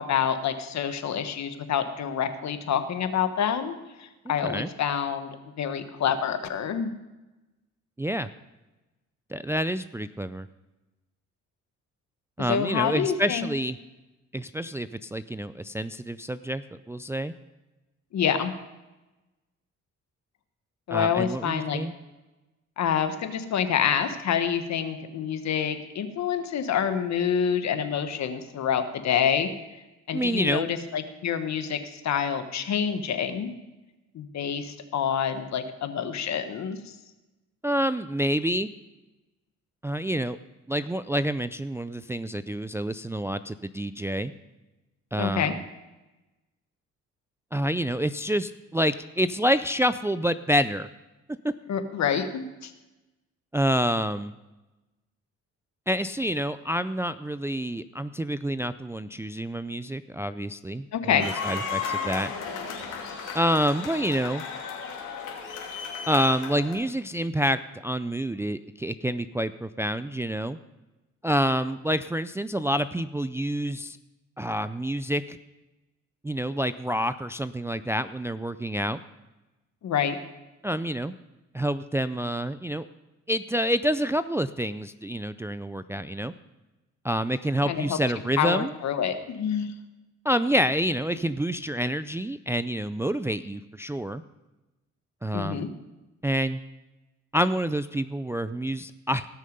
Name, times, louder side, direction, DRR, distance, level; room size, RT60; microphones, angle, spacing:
voice 1, 0.0-6.9 12.5-13.5 18.1-18.5 20.9-21.8 22.8-29.5 30.1-33.5 34.1-36.9 45.2-45.5 51.7-52.7 60.9-61.3 79.8-80.2 87.6-88.0 88.4-89.7 95.3-95.7, left 8 dB, 65° left, 9 dB, 1.3 m, -27 dB
voice 2, 4.3-4.7 8.0-8.3 9.3-10.5 12.4-13.8 14.3-17.3 20.9-21.9 30.1-30.7 37.6-38.7 39.8-40.4 40.7-44.3 45.1-45.6 47.5-50.9 53.5-54.3 55.9-62.3 63.3-64.4 66.1-70.6 71.2-74.0 74.4-75.4 76.2-79.0 80.6-81.1 81.5-82.9 83.3-86.3 87.0-88.7 90.2-94.2 95.2-95.6 96.2-96.6 97.3-99.3, equal, 10° right, 12 dB, 0.4 m, -28 dB
sound 1, 61.2-66.7, left 5 dB, 85° left, 2.7 m, -34 dB
18.5 x 6.5 x 5.3 m, 1.1 s
cardioid pair, 90°, 30 cm